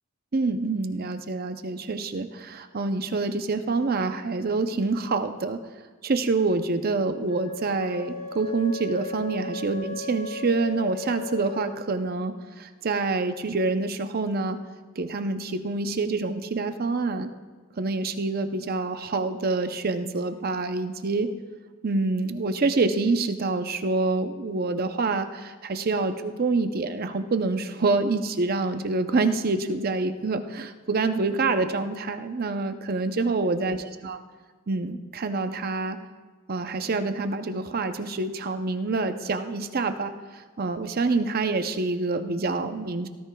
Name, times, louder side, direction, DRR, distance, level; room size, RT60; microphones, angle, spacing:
voice 1, 0.3-5.6 6.0-14.6 15.0-17.3 17.8-21.3 21.8-33.8 34.0-34.2 34.7-36.0 36.5-43.1, right 3 dB, 45° right, 8 dB, 0.6 m, -26 dB
Wind instrument woodwind instrument, 7.3-11.8, left 4 dB, 75° left, 2.1 m, -36 dB
18.0 x 13.5 x 2.3 m, 1.4 s
head